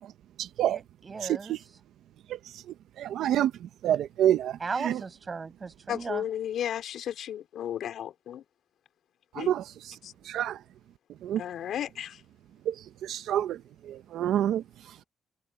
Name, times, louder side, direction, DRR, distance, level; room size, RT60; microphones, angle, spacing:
voice 1, 0.7-1.7 4.6-6.2, right 4 dB, 35° right, 6.8 m, -36 dB
voice 2, 3.0-3.5 3.8-4.6 4.8-4.9 9.4-9.6 10.3-10.6 11.2-11.4 12.7-12.8 13.0-13.6 13.9-14.6, right 11 dB, 80° right, 1.1 m, -26 dB
voice 3, 5.9-8.4 9.3-9.5 10.0-10.1 11.4-12.2, left 10 dB, 70° left, 4.8 m, -34 dB
cardioid pair, 90°, 0 cm